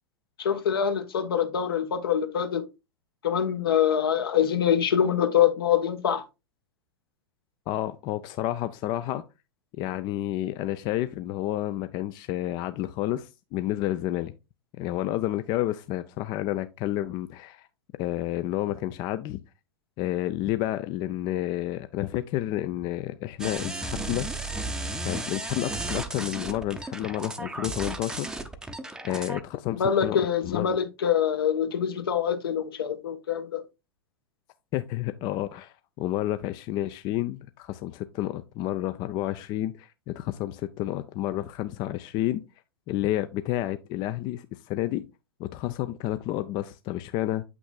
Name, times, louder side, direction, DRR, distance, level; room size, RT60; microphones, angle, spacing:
voice 1, 0.4-2.7 3.2-6.2 29.7-33.6, left 8 dB, 70° left, 1.1 m, -25 dB
voice 2, 7.7-9.2 9.8-14.3 14.8-17.7 18.0-19.4 20.0-24.3 25.0-28.3 29.0-30.8 34.7-42.4 42.9-45.1 45.4-47.4, left 14 dB, 35° left, 0.4 m, -30 dB
sound 1, 23.4-29.4, right 2 dB, 5° right, 0.6 m, -34 dB
7.9 x 6.0 x 2.3 m
figure-of-eight pair, 90°, 13 cm